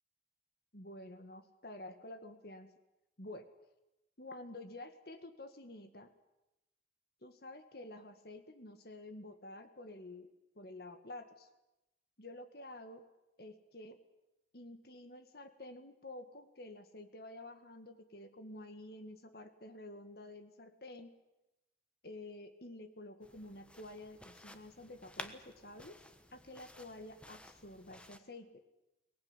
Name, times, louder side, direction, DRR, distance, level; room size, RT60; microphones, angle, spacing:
voice 1, 0.7-2.7 3.2-3.5 4.2-6.1 7.2-10.3 10.6-11.5 12.2-13.0 13.4-14.0 14.5-21.2 22.0-26.0 26.3-28.6, left 1 dB, 55° left, 8 dB, 1.9 m, -50 dB
sound 1, 23.2-28.2, left 1 dB, 5° left, 1.3 m, -53 dB
23.5 x 19.0 x 9.8 m, 0.95 s
head